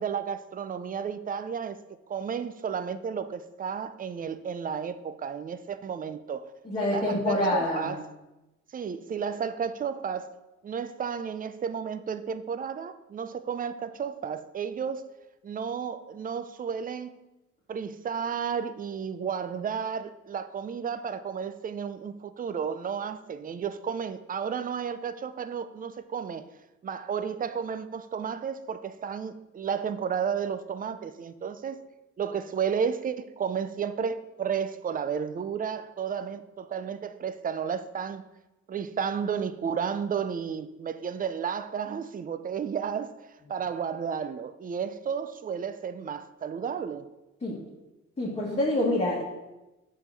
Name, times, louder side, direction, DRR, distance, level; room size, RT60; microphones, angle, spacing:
voice 1, 0.0-1.8 2.1-6.5 6.8-8.0 8.7-10.3 10.6-15.0 15.4-17.1 17.7-26.4 26.8-31.8 32.2-38.3 38.7-47.1, right 7 dB, 30° right, 0.5 m, -32 dB
voice 2, 6.7-7.9 47.4-47.6 48.2-49.2, left 1 dB, 20° left, 1.7 m, -26 dB
6.7 x 3.9 x 6.2 m
cardioid pair, 90°, 30 cm